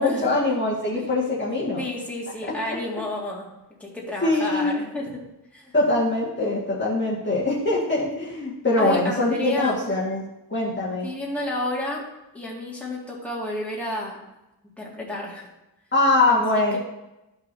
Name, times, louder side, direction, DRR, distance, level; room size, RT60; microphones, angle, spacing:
voice 1, 0.0-1.8 4.2-4.8 5.7-10.2 10.5-11.1 15.9-16.8, left 2 dB, 25° left, -7 dB, 1.7 m, -23 dB
voice 2, 1.8-3.5 3.8-5.1 5.5-5.7 8.8-9.8 11.0-12.0 12.3-14.2 14.8-15.5 16.3-16.8, left 1 dB, 5° left, -5 dB, 2.0 m, -30 dB
13.0 x 5.6 x 2.7 m, 0.93 s
wide cardioid pair, 130°, 42 cm